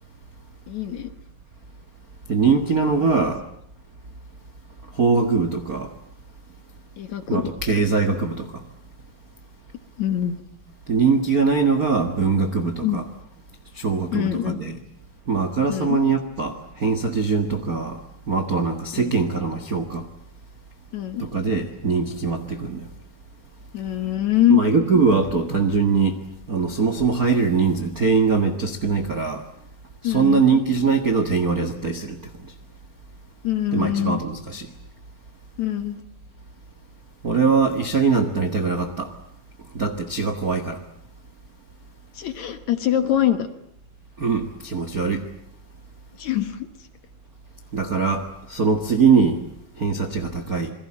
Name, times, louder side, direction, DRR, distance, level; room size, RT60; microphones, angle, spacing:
voice 1, 0.7-1.1 7.0-7.4 10.0-10.4 12.8-13.0 14.1-14.6 15.7-16.0 18.9-19.1 20.9-21.2 23.7-24.6 30.0-30.4 33.4-34.2 35.6-36.0 42.2-43.5 46.2-46.7, left 12 dB, 60° left, 10 dB, 2.3 m, -23 dB
voice 2, 2.3-3.4 4.9-5.9 7.3-8.5 10.9-13.1 13.7-14.8 15.3-18.0 18.3-20.1 21.2-22.8 24.5-26.2 26.5-29.4 30.0-32.2 33.7-34.7 37.2-39.1 39.7-40.8 44.2-45.3 47.7-49.4 49.8-50.7, right 5 dB, 45° right, 8 dB, 1.1 m, -22 dB
28.0 x 21.5 x 8.7 m, 0.70 s
omnidirectional pair, 4.3 m